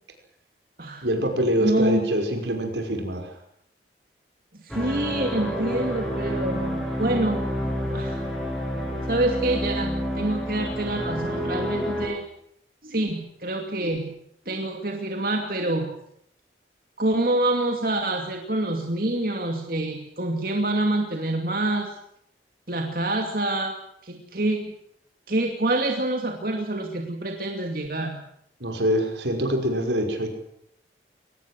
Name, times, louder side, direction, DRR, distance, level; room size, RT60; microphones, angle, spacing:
voice 1, 1.0-3.3 28.6-30.3, equal, 80° right, 4 dB, 5.7 m, -25 dB
voice 2, 1.6-2.1 4.6-7.4 7.9-8.2 9.1-12.2 12.8-14.1 14.5-15.9 17.0-21.9 22.7-23.8 24.0-24.7 25.3-28.2, right 1 dB, 50° right, 3 dB, 2.5 m, -26 dB
sound 1, 4.7-12.1, equal, ahead, 7.1 m, -29 dB
23.0 x 19.0 x 7.7 m, 0.73 s
head